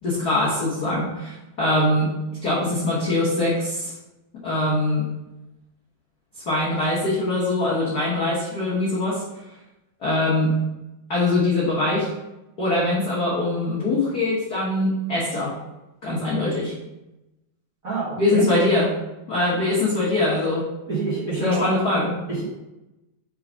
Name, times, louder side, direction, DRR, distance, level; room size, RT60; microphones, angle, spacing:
voice 1, 0.0-2.1 2.4-3.9 4.4-5.1 6.5-9.2 10.0-10.5 11.1-12.1 12.6-15.5 16.0-16.7 18.2-18.9 19.3-20.6 21.4-22.1, left 2 dB, 75° left, -7 dB, 0.9 m, -22 dB
voice 2, 17.8-18.5 20.9-21.7 22.3-22.4, right 3 dB, 40° right, -8 dB, 1.2 m, -26 dB
4.8 x 4.7 x 5.1 m, 0.97 s
omnidirectional pair, 4.0 m